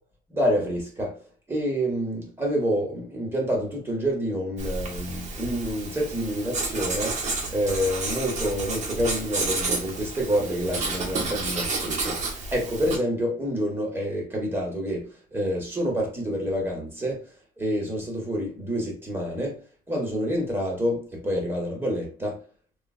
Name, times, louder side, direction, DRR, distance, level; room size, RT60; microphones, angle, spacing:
voice 1, 0.3-1.2 1.5-7.2 7.5-17.3 17.6-22.4, equal, 15° right, 1.5 m, -28 dB
Writing, 4.6-13.0, right 3 dB, 45° right, 1.0 m, -31 dB
3.7 x 2.4 x 2.4 m
cardioid pair, 110°, 17 cm